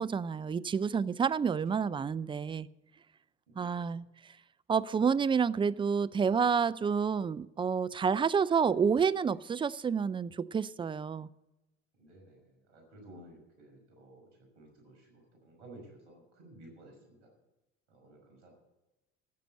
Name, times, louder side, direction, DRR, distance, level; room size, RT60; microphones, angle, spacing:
voice 1, 0.0-2.7 3.6-4.1 4.7-11.3, right 6 dB, 15° right, 0.4 m, -29 dB
voice 2, 3.5-4.0 12.0-14.3 14.6-17.3 17.9-18.5, right 1 dB, 80° right, 5.7 m, -55 dB
14.0 x 7.6 x 8.0 m
hypercardioid pair, 80°, 36 cm